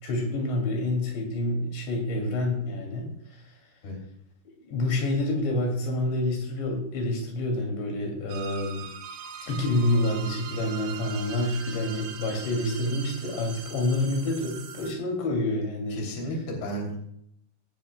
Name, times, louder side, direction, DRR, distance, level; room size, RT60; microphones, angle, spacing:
voice 1, 0.0-3.5 4.7-8.9 9.4-16.0, left 1 dB, 90° left, 1 dB, 5.0 m, -28 dB
sound 1, 8.3-14.9, right 7 dB, 65° right, 2.1 m, -41 dB
voice 2, 15.9-17.0, equal, 65° left, 1 dB, 4.8 m, -33 dB
17.0 x 12.5 x 2.3 m, 0.70 s
omnidirectional pair, 4.9 m